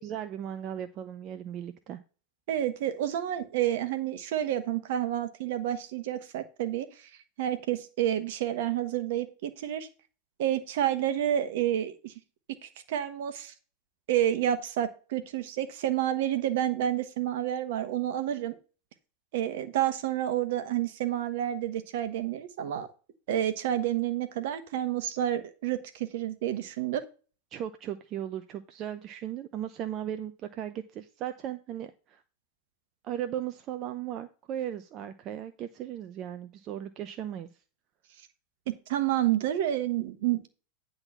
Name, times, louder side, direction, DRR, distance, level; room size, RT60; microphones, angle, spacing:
voice 1, 0.0-2.0 27.5-32.2 33.0-37.5, right 10 dB, 40° right, 8 dB, 0.7 m, -37 dB
voice 2, 2.5-7.1 7.4-9.9 10.4-12.1 12.6-13.5 14.1-18.5 19.3-22.9 23.3-27.0 38.7-40.5, right 11 dB, 60° right, 10 dB, 1.2 m, -29 dB
9.9 x 4.0 x 5.6 m, 0.35 s
hypercardioid pair, 90°, 0 cm